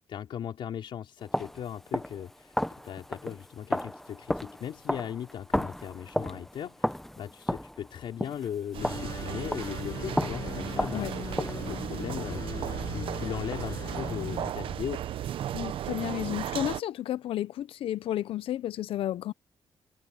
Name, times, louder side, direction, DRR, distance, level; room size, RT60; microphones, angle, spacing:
voice 1, 0.1-15.0, left 9 dB, 65° left, 4.0 m, -38 dB
sound 1, 1.2-9.9 10.2-11.7, left 1 dB, 5° left, 0.7 m, -34 dB
sound 2, 8.7-16.8, right 11 dB, 75° right, 0.8 m, -35 dB
sound 3, 8.8-14.5, left 6 dB, 40° left, 7.0 m, -39 dB
voice 2, 15.5-19.3, left 12 dB, 85° left, 0.6 m, -32 dB
wide cardioid pair, 160°, 9 cm